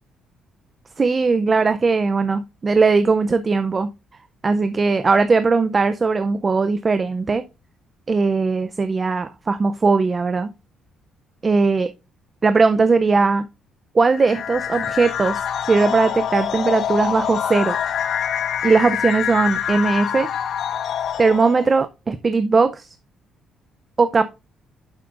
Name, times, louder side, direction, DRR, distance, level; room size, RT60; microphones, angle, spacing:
voice 1, 1.0-3.9 4.4-7.4 8.1-10.5 11.4-11.9 12.4-13.4 13.9-15.4 15.7-17.8 18.6-20.3 21.2-22.9 24.0-24.2, right 4 dB, 25° right, 0.4 m, -19 dB
sound 1, 14.2-21.8, left 9 dB, 55° left, 0.7 m, -25 dB
9.3 x 7.4 x 2.5 m
cardioid pair, 135°, 0 cm